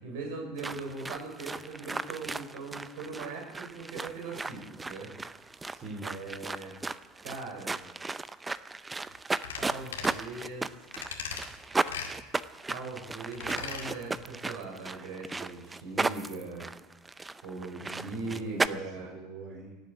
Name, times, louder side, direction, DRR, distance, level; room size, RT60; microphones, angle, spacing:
voice 1, 0.0-5.1 6.0-6.7 7.2-7.8 9.6-10.7 12.7-16.7 17.4-19.1, right 3 dB, 65° right, 0 dB, 5.9 m, -40 dB
sound 1, 0.6-18.7, right 3 dB, 15° right, 0.6 m, -35 dB
voice 2, 5.6-6.1 17.8-19.8, right 3 dB, 35° right, 0 dB, 4.1 m, -45 dB
sound 2, 9.4-9.6 9.9-10.2 10.9-11.5 11.9-12.1 13.3-13.9 14.2-14.3, left 7 dB, 75° left, 2.1 m, -38 dB
17.5 x 8.5 x 8.2 m, 1.1 s
hypercardioid pair, 75°, 0 cm